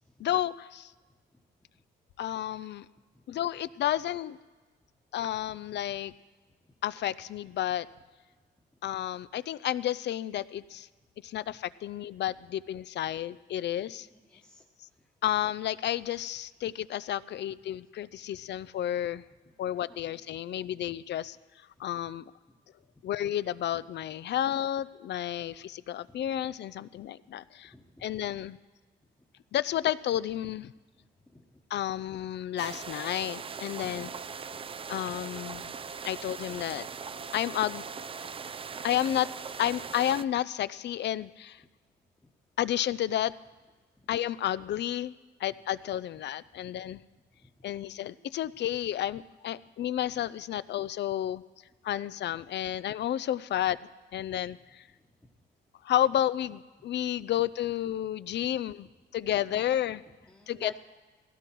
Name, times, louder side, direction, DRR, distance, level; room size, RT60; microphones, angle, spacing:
voice 1, 0.2-0.9 2.2-2.9 3.3-4.4 5.1-6.1 6.8-7.9 8.8-10.9 11.2-14.1 15.2-19.2 19.6-21.4 21.8-22.2 23.0-27.7 28.0-28.6 29.5-30.7 31.7-34.1 34.9-35.7 36.0-36.9 37.3-37.8 38.8-39.3 39.6-41.6 42.6-43.3 44.1-45.1 45.4-47.0 47.6-51.4 51.8-53.8 54.1-54.8 55.8-58.9 59.1-60.0 60.5-60.7, left 12 dB, 60° left, 17 dB, 0.5 m, -31 dB
voice 2, 14.1-14.7 15.0-15.1 19.9-20.2 20.6-20.8 22.8-22.9 26.1-26.5 27.6-28.1 30.9-31.6 34.5-34.7 42.2-42.3 44.0-44.1 46.6-47.0 47.3-47.8 50.1-50.2 55.0-55.3 59.3-60.8, left 1 dB, 10° left, -3 dB, 1.2 m, -53 dB
sound 1, 32.6-40.2, right 5 dB, 30° right, 0.4 m, -40 dB
17.5 x 16.0 x 4.6 m, 1.3 s
cardioid pair, 90°, 20 cm